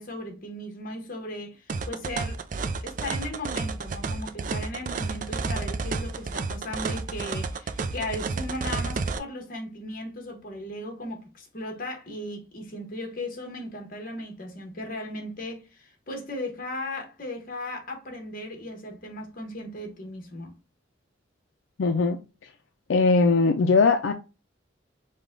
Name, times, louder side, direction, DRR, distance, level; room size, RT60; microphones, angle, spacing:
voice 1, 0.0-2.4 2.8-20.5, left 1 dB, 50° left, 1.2 m, -37 dB
sound 1, 1.7-9.2, right 4 dB, 45° right, 0.4 m, -31 dB
voice 2, 21.8-22.2 22.9-24.1, left 4 dB, 80° left, 0.4 m, -20 dB
5.1 x 2.3 x 3.6 m
head